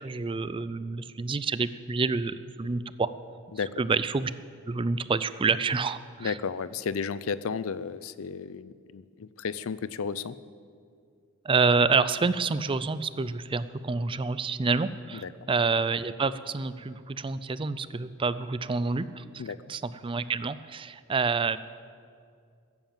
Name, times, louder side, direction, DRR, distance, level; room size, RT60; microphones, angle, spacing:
voice 1, 0.0-3.1 3.8-4.3 4.7-6.4 11.4-19.4 19.7-21.6, right 4 dB, 25° right, 15 dB, 0.4 m, -28 dB
voice 2, 6.2-10.4 15.2-15.3 19.4-19.6, left 5 dB, 70° left, 17 dB, 0.5 m, -33 dB
15.0 x 10.5 x 7.3 m, 2.2 s
head